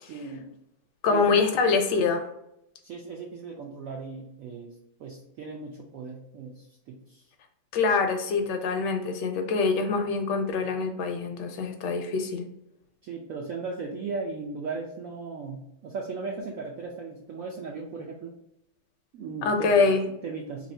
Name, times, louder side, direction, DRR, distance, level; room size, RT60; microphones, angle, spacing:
voice 1, 0.0-0.5 1.1-1.3 2.8-4.7 5.0-7.2 13.0-18.3 19.1-19.7 20.0-20.7, right 4 dB, 85° right, 1 dB, 0.7 m, -37 dB
voice 2, 1.0-2.3 7.7-12.5 19.4-20.0, left 4 dB, 75° left, 5 dB, 1.1 m, -25 dB
3.1 x 2.6 x 4.2 m, 0.81 s
omnidirectional pair, 2.0 m